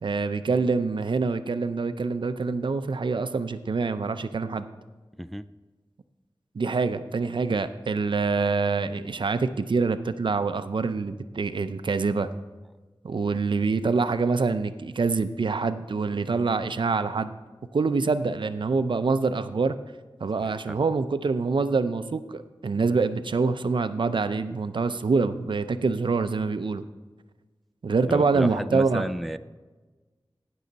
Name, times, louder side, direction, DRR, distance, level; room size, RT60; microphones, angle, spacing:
voice 1, 0.0-4.6 6.6-12.3 13.0-17.3 17.7-19.7 20.2-26.8 27.8-29.1, right 4 dB, 70° right, 11 dB, 0.5 m, -25 dB
voice 2, 20.4-20.8 28.1-29.4, right 1 dB, ahead, 12 dB, 0.3 m, -32 dB
16.5 x 6.3 x 4.0 m, 1.3 s
wide cardioid pair, 75°, 9 cm